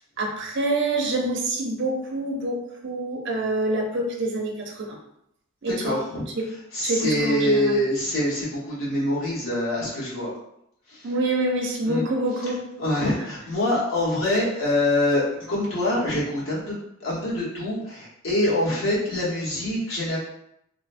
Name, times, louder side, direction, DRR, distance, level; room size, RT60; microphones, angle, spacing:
voice 1, 0.2-2.6 2.8-5.0 5.6-6.0 6.4-6.5 6.8-7.6 11.0-12.6, right 2 dB, 60° right, 1 dB, 0.5 m, -26 dB
voice 2, 5.6-10.3 10.9-11.1 11.8-12.0 12.8-20.2, left 1 dB, 75° left, -6 dB, 1.1 m, -25 dB
2.9 x 2.0 x 2.5 m, 0.77 s
head